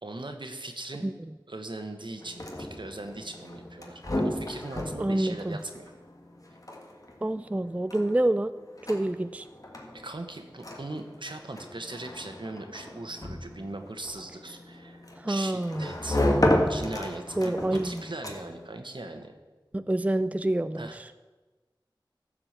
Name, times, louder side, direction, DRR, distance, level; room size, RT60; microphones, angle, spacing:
voice 1, 0.0-1.0 1.5-5.9 9.9-16.2 16.7-17.5 17.8-19.4 20.7-21.0, right 2 dB, 70° right, 6 dB, 1.2 m, -39 dB
sound 1, 2.2-18.7, left 1 dB, 45° left, 1.7 m, -33 dB
voice 2, 5.0-5.6 7.2-8.5 8.9-9.5 15.2-15.9 17.4-18.0 19.7-20.9, right 1 dB, 15° right, 12 dB, 0.3 m, -27 dB
14.5 x 5.0 x 7.3 m, 1.2 s
wide cardioid pair, 45°, 8 cm